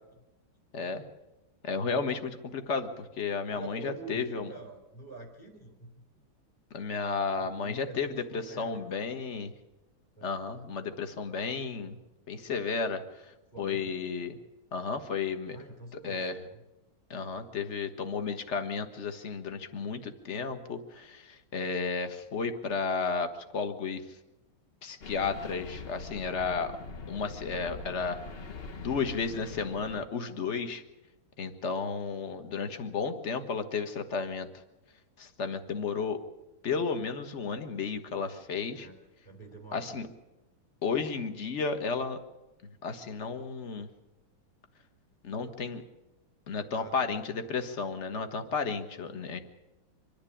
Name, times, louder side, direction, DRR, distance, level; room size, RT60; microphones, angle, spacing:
voice 1, 1.6-4.5 6.7-9.5 10.2-12.0 12.3-13.0 13.6-14.4 14.7-15.6 15.9-16.4 17.1-24.0 24.8-26.7 27.1-28.2 28.8-30.8 31.4-34.5 35.2-36.2 36.6-38.9 39.7-40.1 40.8-42.2 42.8-43.9 45.2-45.8 46.5-49.4, left 5 dB, 35° left, 8 dB, 1.5 m, -33 dB
voice 2, 3.5-5.9 7.4-9.2 10.2-10.4 13.5-13.9 15.5-16.6 38.7-38.9 39.2-40.1 46.7-47.2, right 3 dB, 20° left, 4 dB, 3.8 m, -47 dB
sound 1, 25.0-30.1, left 4 dB, 60° left, 0.6 m, -43 dB
25.5 x 10.5 x 10.0 m, 1.0 s
omnidirectional pair, 2.4 m